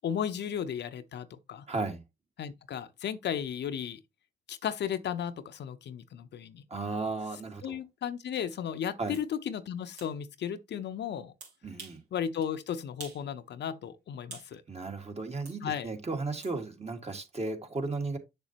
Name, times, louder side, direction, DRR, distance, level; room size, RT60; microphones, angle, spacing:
voice 1, 0.0-1.7 2.4-4.0 4.5-6.6 7.6-11.3 12.1-14.6 15.6-15.9, left 8 dB, 70° left, 0.8 m, -35 dB
voice 2, 1.7-2.0 6.7-7.8 9.0-9.2 11.6-12.0 14.7-18.2, right 3 dB, 35° right, 2.0 m, -35 dB
sound 1, 8.3-8.5 9.1-9.3 10.0-10.1 11.4-12.0 12.4-12.5 13.0-13.3 13.6-14.5 15.5-15.6 16.4-16.6, right 4 dB, 80° right, 3.5 m, -47 dB
6.9 x 6.8 x 2.9 m
supercardioid pair, 55°, 18 cm